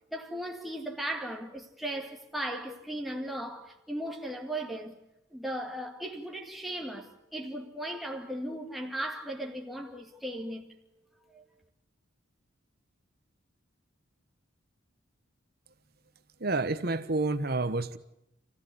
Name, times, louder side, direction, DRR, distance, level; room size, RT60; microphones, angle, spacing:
voice 1, 0.1-5.0 5.3-10.7 11.3-11.4, right 1 dB, ahead, 2.2 m, -37 dB
voice 2, 16.4-18.0, right 2 dB, 50° right, 1.1 m, -29 dB
28.5 x 16.0 x 8.4 m
head